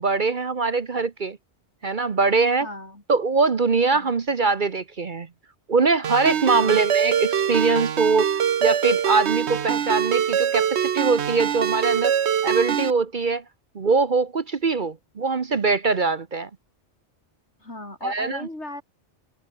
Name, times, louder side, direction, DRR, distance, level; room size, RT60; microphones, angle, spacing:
voice 1, 0.0-1.4 1.8-2.7 3.1-5.3 5.7-8.3 8.6-12.2 12.4-13.4 13.7-16.5 18.0-18.5, right 4 dB, 45° right, 1.1 m, -22 dB
voice 2, 2.6-3.0 3.9-4.1 6.5-6.9 17.6-18.8, left 1 dB, 70° left, 7.1 m, -37 dB
Ringtone, 6.0-12.9, right 8 dB, 65° right, 1.2 m, -23 dB
omnidirectional pair, 1.2 m